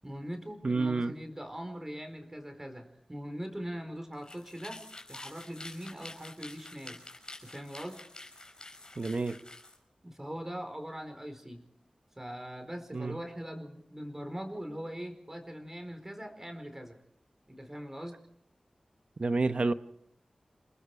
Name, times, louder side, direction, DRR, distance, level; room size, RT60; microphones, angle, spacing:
voice 1, 0.0-4.8 5.1-7.0 7.4-8.0 10.0-11.6 12.2-17.0 17.5-18.2, equal, 20° right, 4.5 m, -41 dB
voice 2, 0.6-1.1 9.0-9.4 12.9-13.2 19.2-19.7, right 3 dB, 60° right, 0.9 m, -29 dB
sound 1, 4.1-9.8, left 2 dB, 40° left, 5.1 m, -48 dB
29.0 x 20.5 x 4.8 m
wide cardioid pair, 60°, 2 cm